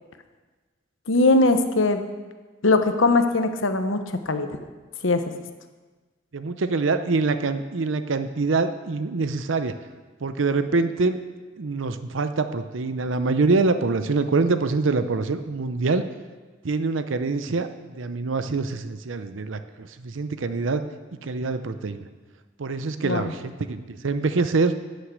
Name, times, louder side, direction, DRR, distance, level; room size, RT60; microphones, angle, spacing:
voice 1, 1.1-2.0 2.6-4.5 5.0-5.2 23.0-23.2, left 2 dB, 90° left, 8 dB, 1.0 m, -20 dB
voice 2, 6.3-9.8 10.2-11.2 11.6-16.0 16.6-20.8 21.2-22.1 22.6-24.7, right 3 dB, 85° right, 10 dB, 0.6 m, -25 dB
11.0 x 6.5 x 8.0 m, 1.3 s
head